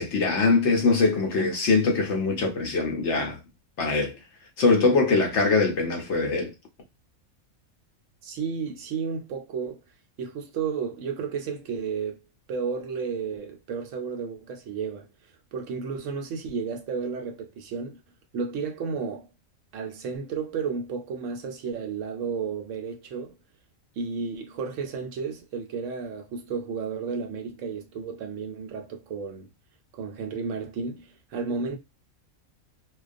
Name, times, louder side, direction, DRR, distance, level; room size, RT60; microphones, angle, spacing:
voice 1, 0.0-3.4 3.8-4.2 4.6-6.5, left 3 dB, 65° left, 0.8 m, -22 dB
voice 2, 8.2-9.8 10.2-12.2 12.5-15.1 15.5-18.0 18.3-19.3 19.7-23.3 24.0-29.5 29.9-31.8, right 5 dB, 70° right, 0.9 m, -32 dB
2.3 x 2.2 x 2.5 m
omnidirectional pair, 1.5 m